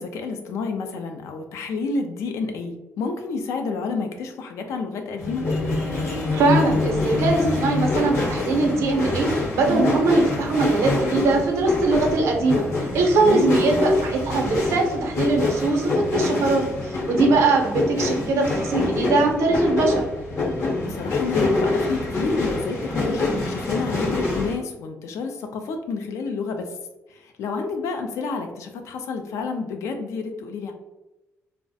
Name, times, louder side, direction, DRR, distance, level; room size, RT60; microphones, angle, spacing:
voice 1, 0.0-5.5 9.7-9.9 13.2-13.6 20.7-26.7 27.1-30.7, left 4 dB, 85° left, 5 dB, 0.4 m, -29 dB
sound 1, 5.2-24.6, left 2 dB, 60° left, 0.8 m, -25 dB
voice 2, 6.3-9.3 9.5-12.6 12.9-20.0, right 3 dB, 90° right, 2 dB, 0.6 m, -21 dB
2.3 x 2.0 x 2.6 m, 0.99 s
cardioid pair, 135°, 5 cm